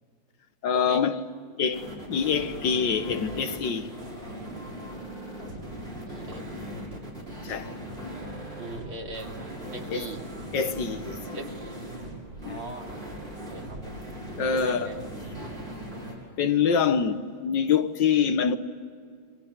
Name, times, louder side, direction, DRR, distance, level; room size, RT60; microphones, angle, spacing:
voice 1, 0.6-1.2 1.6-3.9 7.4-7.7 9.9-10.1 10.5-11.2 12.4-12.6 14.4-14.9 16.4-18.6, left 7 dB, 65° left, 1.7 m, -25 dB
sound 1, 1.7-16.2, right 1 dB, 25° right, 6.9 m, -39 dB
voice 2, 6.1-7.1 8.6-10.2 11.3-11.5 12.4-13.0 13.5-14.0 14.4-15.2, right 2 dB, 90° right, 3.2 m, -40 dB
28.5 x 24.5 x 8.0 m
omnidirectional pair, 2.2 m